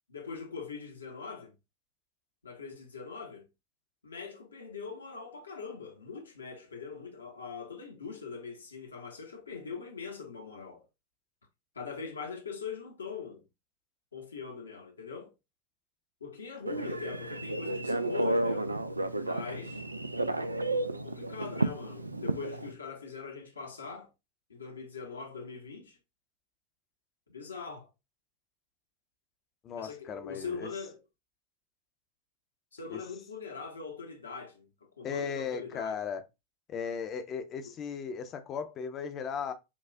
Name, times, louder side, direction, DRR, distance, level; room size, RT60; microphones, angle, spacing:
voice 1, 0.1-1.5 2.4-3.5 4.0-10.8 11.7-13.4 14.1-15.3 16.2-18.8 19.2-19.8 21.0-24.1 24.5-26.0 27.3-27.9 29.7-31.0 32.7-34.7 35.0-36.0, left 5 dB, 75° left, 1.0 m, -42 dB
Telephone, 16.7-22.7, right 2 dB, 85° right, 0.3 m, -32 dB
voice 2, 29.6-30.7 32.9-33.0 35.0-36.3 36.7-39.5, left 6 dB, 30° left, 0.6 m, -36 dB
5.8 x 2.4 x 2.2 m
figure-of-eight pair, 90°, 0 cm